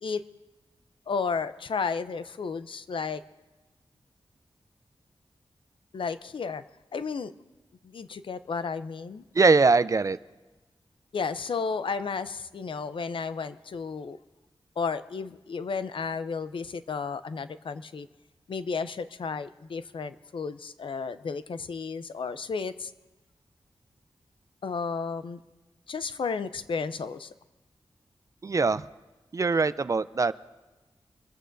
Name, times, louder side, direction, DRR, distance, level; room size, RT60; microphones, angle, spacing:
voice 1, 1.1-3.2 5.9-6.6 6.9-7.3 7.8-9.2 11.1-14.2 14.8-18.1 18.5-22.9 24.6-25.4 25.9-27.3, left 5 dB, 65° left, 12 dB, 0.6 m, -33 dB
voice 2, 9.3-10.2 28.4-28.8 29.3-30.3, right 4 dB, 35° right, 15 dB, 0.4 m, -22 dB
26.5 x 15.0 x 2.6 m, 1.2 s
wide cardioid pair, 120°, 9 cm